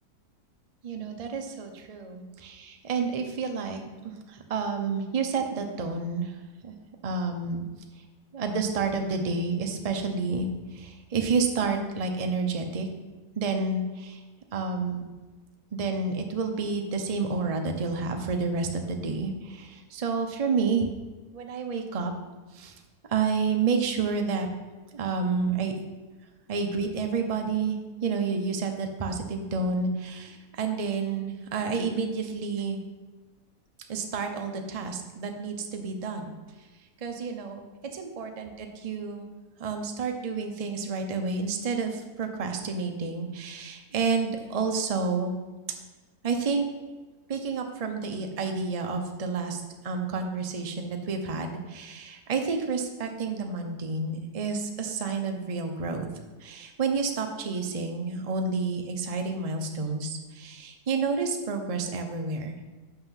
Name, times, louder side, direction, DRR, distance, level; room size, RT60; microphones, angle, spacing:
voice 1, 0.8-6.4 6.6-6.7 7.0-7.6 8.3-12.9 13.4-14.2 14.5-15.0 15.7-20.9 21.3-22.1 22.5-22.8 23.1-24.5 24.9-25.8 26.5-27.8 28.0-32.8 33.9-36.4 37.0-37.6 37.9-39.3 39.6-45.4 46.2-46.7 47.3-56.1 56.4-62.6, right 4 dB, 35° right, 4 dB, 0.6 m, -30 dB
6.6 x 5.7 x 5.7 m, 1.3 s
omnidirectional pair, 1.8 m